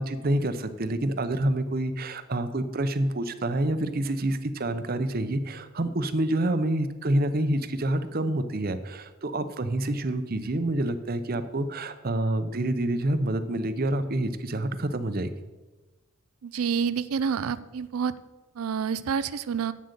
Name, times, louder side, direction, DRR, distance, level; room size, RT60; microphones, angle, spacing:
voice 1, 0.0-15.3, right 1 dB, 45° right, 11 dB, 0.7 m, -27 dB
voice 2, 16.4-18.1 18.6-19.7, right 6 dB, 80° right, 16 dB, 0.4 m, -28 dB
8.5 x 7.6 x 6.7 m, 1.2 s
head